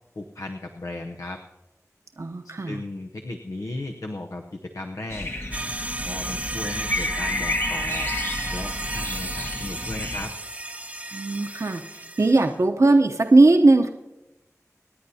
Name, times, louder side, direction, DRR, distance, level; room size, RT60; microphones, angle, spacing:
voice 1, 0.2-1.4 2.6-5.3 6.0-8.1 8.5-10.3, left 2 dB, 80° left, 3 dB, 0.8 m, -36 dB
voice 2, 2.2-2.8 11.1-13.9, right 2 dB, 60° right, 4 dB, 0.8 m, -19 dB
sound 1, 5.1-10.3, left 1 dB, 45° left, 1.2 m, -31 dB
sound 2, 5.5-12.5, right 1 dB, 25° right, 0.8 m, -33 dB
26.0 x 9.9 x 2.8 m, 0.98 s
wide cardioid pair, 60°, 6 cm